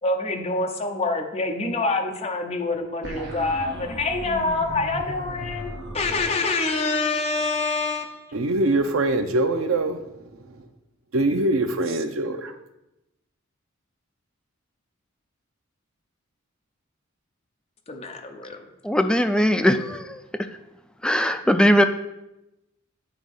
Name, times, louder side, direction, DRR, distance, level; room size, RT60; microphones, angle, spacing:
voice 1, 0.0-8.3 17.9-18.6, left 3 dB, 30° left, 0.9 m, -26 dB
sound 1, 3.0-6.2, right 1 dB, 60° right, 1.2 m, -36 dB
voice 2, 8.3-10.1 10.5-10.6 11.1-12.5, right 2 dB, 85° right, 0.7 m, -23 dB
voice 3, 18.8-20.2 21.0-21.8, equal, 5° left, 0.3 m, -19 dB
8.9 x 3.1 x 5.4 m
head